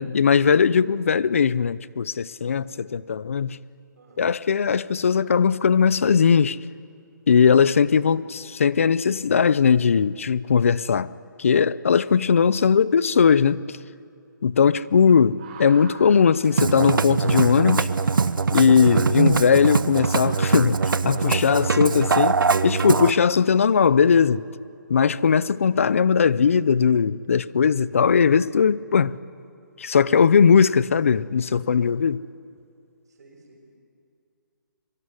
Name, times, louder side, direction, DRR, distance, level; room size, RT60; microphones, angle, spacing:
voice 1, 0.0-3.6 4.2-6.6 7.3-11.1 11.4-13.8 14.4-17.9 18.5-20.8 21.0-22.3 22.6-24.4 24.9-29.1 29.8-32.2, left 6 dB, 40° left, 0.6 m, -19 dB
voice 2, 4.0-4.3 21.4-22.1 30.2-30.4 31.5-32.1 33.0-33.6, right 3 dB, 55° right, 6.2 m, -48 dB
sound 1, 15.1-21.8, right 3 dB, 25° right, 4.3 m, -48 dB
Musical instrument, 16.4-23.1, right 4 dB, 80° right, 1.0 m, -22 dB
25.5 x 24.0 x 9.8 m
hypercardioid pair, 175°, 11 cm